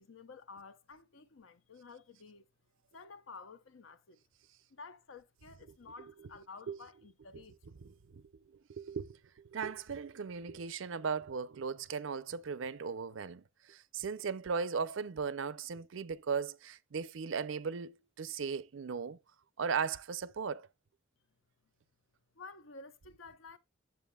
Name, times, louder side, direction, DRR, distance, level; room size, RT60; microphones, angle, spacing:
voice 1, 0.0-2.5 2.9-4.2 4.7-7.6 8.1-8.2 22.3-23.6, left 4 dB, 75° left, 0.7 m, -52 dB
voice 2, 7.8-9.2 9.5-19.2 19.6-20.7, right 5 dB, 70° right, 0.5 m, -37 dB
9.1 x 7.2 x 2.3 m
head